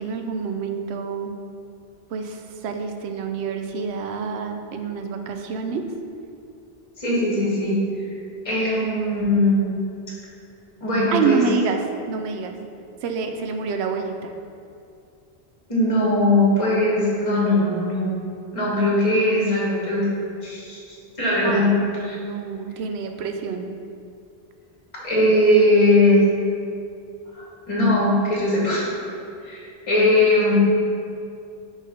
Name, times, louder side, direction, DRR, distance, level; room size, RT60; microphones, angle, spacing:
voice 1, 0.0-1.4 2.1-5.8 11.1-12.5 13.0-14.3 21.4-21.7 22.0-23.7, right 5 dB, 90° right, 5 dB, 0.8 m, -27 dB
voice 2, 7.0-7.8 8.4-9.7 10.8-11.4 15.7-18.1 18.5-20.1 20.4-20.8 21.2-21.7 22.0-22.2 25.0-26.2 27.3-28.9 29.4-30.5, left 1 dB, 35° left, -5 dB, 1.2 m, -20 dB
5.4 x 3.5 x 5.3 m, 2.5 s
omnidirectional pair, 1.1 m